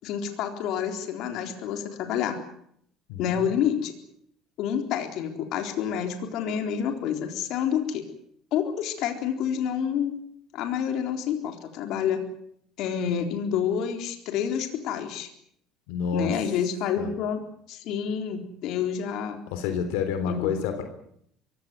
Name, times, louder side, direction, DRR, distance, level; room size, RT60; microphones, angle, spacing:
voice 1, 0.0-2.4 3.2-3.9 4.6-8.0 8.5-10.2 10.5-12.2 12.8-15.3 16.1-17.4 17.7-19.4 20.3-20.5, left 8 dB, 65° left, 5 dB, 3.9 m, -28 dB
voice 2, 3.1-3.5 15.9-16.4 17.0-17.1 19.5-20.8, left 7 dB, 90° left, 8 dB, 3.5 m, -29 dB
23.5 x 17.0 x 9.6 m, 0.70 s
cardioid pair, 125°, 0 cm